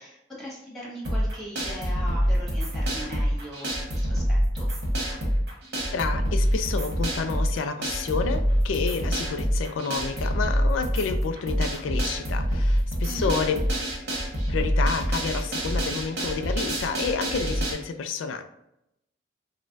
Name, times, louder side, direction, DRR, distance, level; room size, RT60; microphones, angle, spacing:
voice 1, 0.0-4.7 13.1-13.4, equal, ahead, -6 dB, 1.5 m, -39 dB
sound 1, 1.0-17.7, equal, 60° right, 1.3 m, -26 dB
voice 2, 5.9-13.6 14.5-18.4, left 5 dB, 85° left, 7 dB, 0.3 m, -29 dB
5.1 x 2.1 x 2.5 m, 0.83 s
head